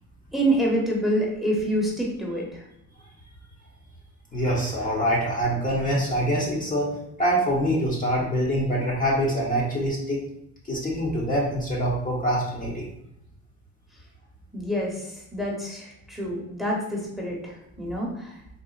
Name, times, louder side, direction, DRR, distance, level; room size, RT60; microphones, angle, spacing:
voice 1, 0.3-2.6 14.5-18.4, right 1 dB, ahead, -3 dB, 1.0 m, -27 dB
voice 2, 4.3-6.9 7.2-10.2 10.7-12.9, equal, 25° left, -4 dB, 0.9 m, -25 dB
3.9 x 2.4 x 2.4 m, 0.78 s
cardioid pair, 90°, 30 cm